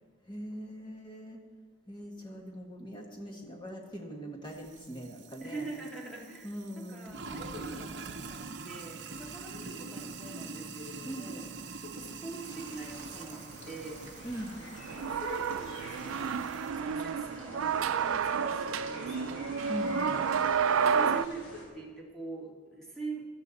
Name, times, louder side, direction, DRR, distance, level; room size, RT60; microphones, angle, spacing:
voice 1, 0.2-1.4 1.9-5.7 6.4-7.1 11.0-11.3 14.2-14.5 19.7-20.2, equal, 25° left, 1 dB, 1.6 m, -41 dB
Sink (filling or washing), 4.5-16.8, right 4 dB, 55° right, 0.7 m, -45 dB
voice 2, 5.4-6.5 6.8-11.4 11.8-19.5 20.6-23.3, right 2 dB, 5° left, -3 dB, 2.1 m, -44 dB
sound 1, 12.4-21.7, left 1 dB, 80° left, 3.7 m, -48 dB
sound 2, 14.7-21.3, right 6 dB, 85° right, 0.4 m, -30 dB
16.5 x 13.0 x 4.1 m, 1.5 s
head